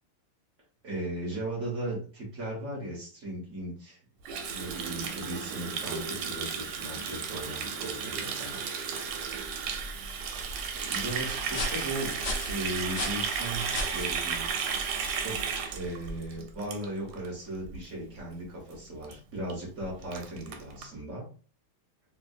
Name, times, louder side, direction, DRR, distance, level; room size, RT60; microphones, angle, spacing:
voice 1, 0.8-4.0 4.4-8.6 10.8-12.1 12.5-14.5 15.2-21.2, right 1 dB, 45° right, -3 dB, 1.2 m, -37 dB
Water tap faucet, 4.2-17.3 17.5-17.8 18.1-18.4 18.7-18.8 19.0-19.1 19.5-19.6 19.8-20.9, right 6 dB, 90° right, 1.5 m, -34 dB
sound 1, 9.1-16.5, left 1 dB, 85° left, 0.6 m, -39 dB
3.3 x 2.6 x 2.5 m, 0.40 s
omnidirectional pair, 2.4 m